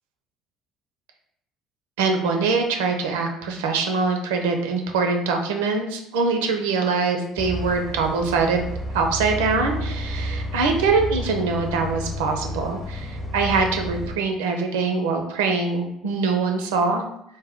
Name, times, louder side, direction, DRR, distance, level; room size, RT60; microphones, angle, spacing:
voice 1, 2.0-8.7 8.9-17.0, right 4 dB, 80° right, 4 dB, 0.6 m, -23 dB
sound 1, 7.4-14.2, left 1 dB, 25° left, 0.9 m, -31 dB
3.5 x 2.2 x 3.5 m, 0.76 s
hypercardioid pair, 65°, 0 cm